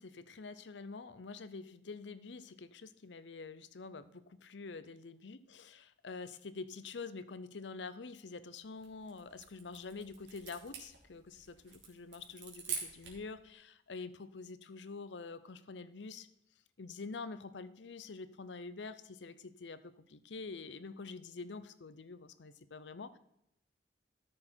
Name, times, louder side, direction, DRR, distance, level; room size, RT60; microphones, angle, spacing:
voice 1, 0.0-16.3 16.8-23.2, left 4 dB, 85° left, 14 dB, 0.6 m, -47 dB
sound 1, 8.6-13.3, right 6 dB, 85° right, 2.8 m, -46 dB
13.0 x 6.5 x 4.4 m, 0.80 s
head